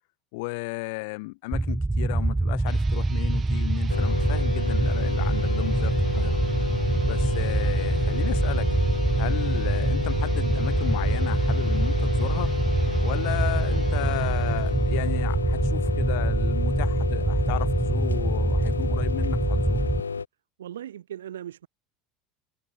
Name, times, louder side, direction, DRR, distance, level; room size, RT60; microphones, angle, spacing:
voice 1, 0.3-6.4 7.0-8.7 9.2-12.5 13.0-19.9, left 27 dB, 65° left, 6.7 m, -35 dB
sound 1, 1.5-20.0, right 2 dB, 10° right, 0.6 m, -25 dB
sound 2, 2.6-15.3, right 8 dB, 35° right, 5.4 m, -47 dB
sound 3, 3.9-20.3, left 5 dB, 90° left, 0.4 m, -31 dB
voice 2, 20.6-21.7, right 11 dB, 80° right, 3.4 m, -38 dB
hypercardioid pair, 75°, 0 cm